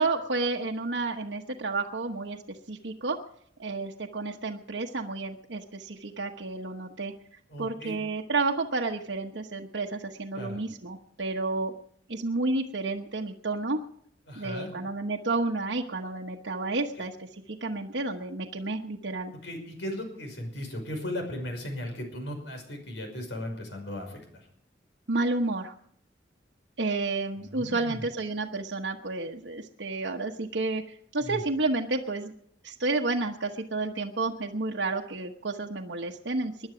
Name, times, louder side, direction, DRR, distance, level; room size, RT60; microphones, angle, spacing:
voice 1, 0.0-3.2 3.6-7.1 7.6-11.7 12.1-13.8 14.4-19.3 25.1-25.7 26.8-32.3 32.6-36.7, right 3 dB, 85° right, 1 dB, 1.1 m, -31 dB
voice 2, 7.5-7.9 10.3-10.6 14.3-14.7 19.3-24.5 27.5-28.0 31.2-31.4, left 1 dB, 85° left, 4 dB, 5.6 m, -37 dB
20.5 x 11.0 x 5.1 m, 0.66 s
head